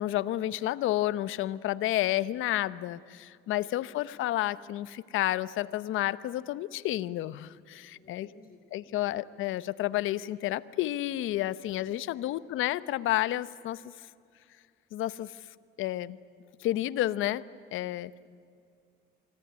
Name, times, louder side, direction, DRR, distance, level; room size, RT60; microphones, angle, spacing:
voice 1, 0.0-8.3 8.7-13.8 14.9-15.4 15.8-16.2 16.6-17.4 17.7-18.1, left 14 dB, 90° left, 17 dB, 0.9 m, -30 dB
voice 2, 3.5-4.3 7.9-9.4 12.1-12.5 18.1-18.2, left 4 dB, 45° left, 5 dB, 2.9 m, -58 dB
25.5 x 24.5 x 9.5 m, 2.3 s
cardioid pair, 90°, 20 cm